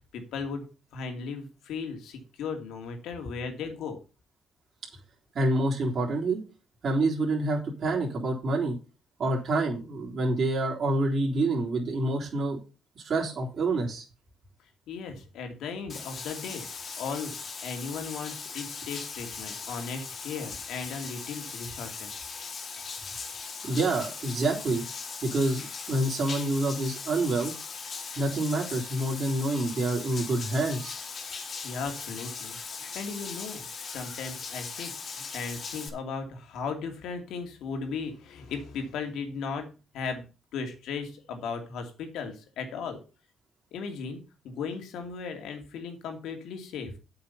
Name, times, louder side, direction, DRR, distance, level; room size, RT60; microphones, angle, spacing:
voice 1, 0.1-0.7 0.9-4.0 14.9-17.3 17.6-22.2 31.6-32.6 32.9-40.3 40.5-43.0 43.7-46.9, left 5 dB, 80° left, 5 dB, 2.6 m, -36 dB
voice 2, 5.3-6.4 6.8-8.8 9.2-12.6 13.0-14.0 23.6-24.8 25.2-27.5 28.2-30.9, right 2 dB, 50° right, -3 dB, 3.8 m, -27 dB
Bathtub (filling or washing), 15.9-35.9, left 5 dB, 50° left, 2.4 m, -39 dB
8.7 x 6.7 x 5.6 m, 0.32 s
cardioid pair, 90°, 0 cm